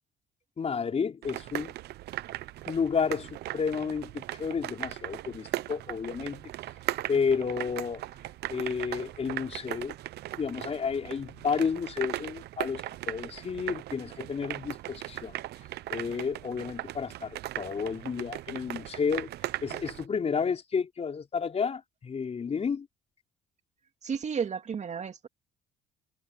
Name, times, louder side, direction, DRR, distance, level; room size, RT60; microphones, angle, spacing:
voice 1, 0.6-1.7 2.7-6.5 7.1-8.0 8.5-9.9 10.3-15.4 15.9-19.3 19.6-22.9, left 6 dB, 35° left, 4.4 m, -31 dB
sound 1, 1.2-20.1, right 15 dB, 70° right, 0.9 m, -38 dB
voice 2, 24.0-25.3, right 6 dB, 40° right, 2.3 m, -32 dB
supercardioid pair, 85°, 18 cm